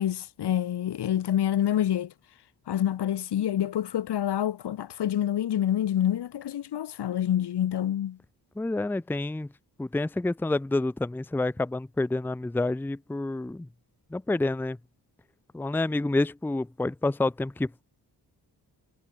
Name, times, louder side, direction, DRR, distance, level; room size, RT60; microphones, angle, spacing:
voice 1, 0.0-2.1 2.7-8.2, left 11 dB, 75° left, 1.6 m, -27 dB
voice 2, 8.6-9.5 9.8-13.7 14.1-14.8 15.5-17.8, left 2 dB, 5° left, 0.6 m, -28 dB
cardioid pair, 105°, 40 cm